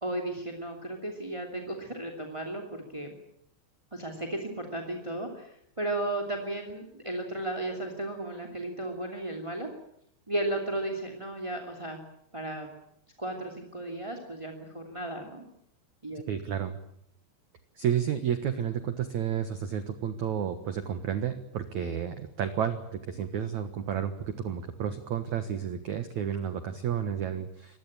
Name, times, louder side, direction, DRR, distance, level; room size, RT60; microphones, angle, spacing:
voice 1, 0.0-3.1 3.9-9.7 10.3-12.0 12.3-12.7 13.2-15.4 16.0-16.2, right 1 dB, 10° right, 2 dB, 1.6 m, -34 dB
voice 2, 16.3-16.8 17.8-27.8, right 8 dB, 65° right, 9 dB, 1.9 m, -31 dB
25.5 x 20.5 x 8.7 m, 0.73 s
omnidirectional pair, 5.2 m